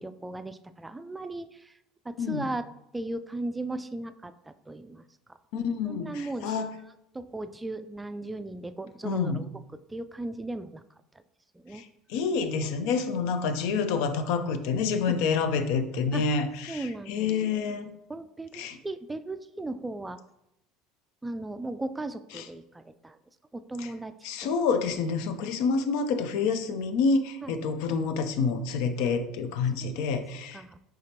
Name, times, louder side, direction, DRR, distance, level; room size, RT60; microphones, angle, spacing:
voice 1, 0.0-1.7 2.1-2.7 2.9-5.0 5.9-6.7 7.1-9.5 9.9-10.8 11.6-11.8 15.1-15.2 16.1-16.2 16.7-17.6 18.1-20.2 21.2-23.2 23.5-24.1 24.4-24.5 27.4-27.6 29.8-30.2 30.5-30.8, right 2 dB, 15° right, 12 dB, 0.3 m, -37 dB
voice 2, 5.5-6.7 9.0-9.4 11.7-11.8 12.1-17.9 18.5-18.8 22.3-22.4 23.8-23.9 24.2-30.6, left 5 dB, 70° left, 8 dB, 0.4 m, -28 dB
5.0 x 3.4 x 2.8 m, 0.84 s
hypercardioid pair, 80°, 0 cm